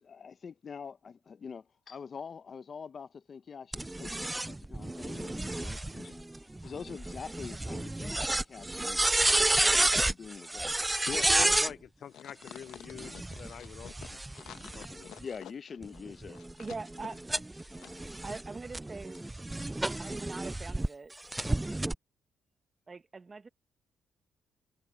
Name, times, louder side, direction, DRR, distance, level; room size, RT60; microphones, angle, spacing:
voice 1, 0.0-9.1 9.6-10.7 15.2-16.4, left 6 dB, 45° left, 0.8 m, -45 dB
sound 1, 3.7-11.7 12.9-15.2 15.8-20.9 21.3-21.9, right 2 dB, 10° right, 0.3 m, -31 dB
voice 2, 11.1-14.2 14.4-15.1, left 8 dB, 60° left, 0.4 m, -45 dB
sound 2, 12.1-18.0 18.2-18.4, left 12 dB, 85° left, 1.2 m, -49 dB
voice 3, 16.3-17.2 18.2-19.2 19.9-21.1 22.9-23.5, right 3 dB, 30° right, 1.3 m, -42 dB
voice 4, 17.7-21.0, left 2 dB, 20° left, 7.7 m, -67 dB
cardioid pair, 90°, 0 cm